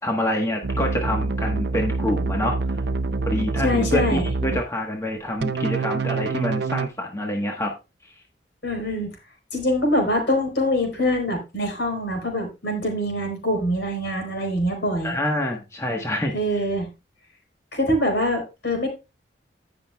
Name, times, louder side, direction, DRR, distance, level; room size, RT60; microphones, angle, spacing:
voice 1, 0.0-2.6 3.2-7.7 8.0-8.1 15.0-16.6, left 1 dB, 15° left, 1 dB, 1.2 m, -26 dB
sound 1, 0.6-4.6 5.4-6.9, right 3 dB, 65° right, 0.6 m, -26 dB
voice 2, 3.6-4.2 8.6-9.1 9.5-15.2 16.3-16.9 17.7-18.9, left 1 dB, 70° left, 1 dB, 4.1 m, -24 dB
17.0 x 6.0 x 2.3 m, 0.28 s
head